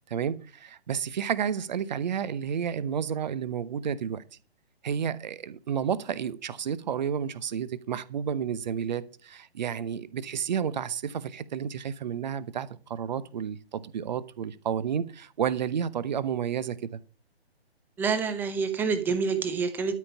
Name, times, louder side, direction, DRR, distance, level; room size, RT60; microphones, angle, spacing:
voice 1, 0.1-4.2 4.8-17.0, right 8 dB, 45° right, 0.9 m, -31 dB
voice 2, 18.0-19.9, right 5 dB, 5° right, 0.7 m, -27 dB
12.5 x 5.3 x 7.1 m
figure-of-eight pair, 135°, 32 cm